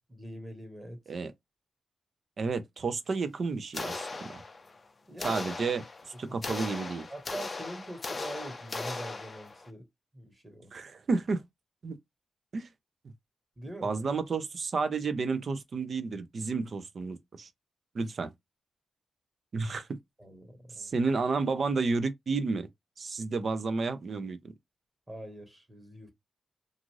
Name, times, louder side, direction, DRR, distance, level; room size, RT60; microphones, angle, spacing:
voice 1, 0.1-1.0 5.1-5.5 6.3-6.4 7.1-9.8 10.1-10.7 13.6-13.9 20.2-20.9 25.1-26.1, right 1 dB, 20° right, 1.2 m, -43 dB
voice 2, 2.4-4.4 5.2-5.8 6.2-7.1 10.7-11.4 11.8-11.9 12.5-12.7 13.8-17.5 17.9-18.3 19.5-19.9 20.8-22.7 23.0-24.5, right 4 dB, 55° right, 0.5 m, -31 dB
sound 1, 3.7-4.8 5.2-9.7, left 3 dB, 35° left, 0.5 m, -38 dB
2.5 x 2.5 x 3.1 m
cardioid pair, 90°, 0 cm